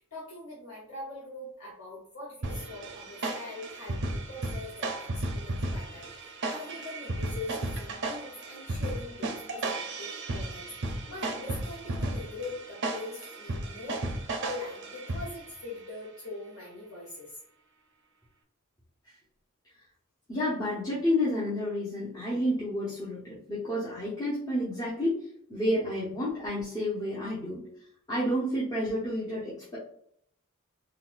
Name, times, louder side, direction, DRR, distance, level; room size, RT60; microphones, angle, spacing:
voice 1, 0.0-17.4, left 2 dB, 65° left, -6 dB, 0.9 m, -42 dB
sound 1, 2.4-15.6, right 2 dB, 55° right, 0.5 m, -35 dB
voice 2, 20.3-27.6 28.1-29.8, left 1 dB, 20° left, -8 dB, 0.8 m, -30 dB
3.9 x 2.3 x 2.5 m, 0.67 s
head